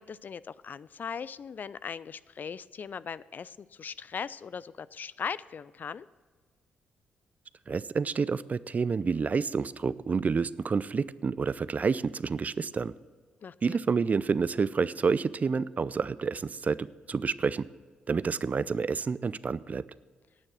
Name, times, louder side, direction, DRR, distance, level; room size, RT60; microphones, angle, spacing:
voice 1, 0.0-6.1 13.4-13.8, left 6 dB, 50° left, 18 dB, 0.4 m, -39 dB
voice 2, 7.7-12.9 13.6-17.7 18.1-19.8, right 5 dB, 40° right, 18 dB, 0.4 m, -29 dB
10.5 x 8.9 x 6.2 m, 1.5 s
hypercardioid pair, 45°, 4 cm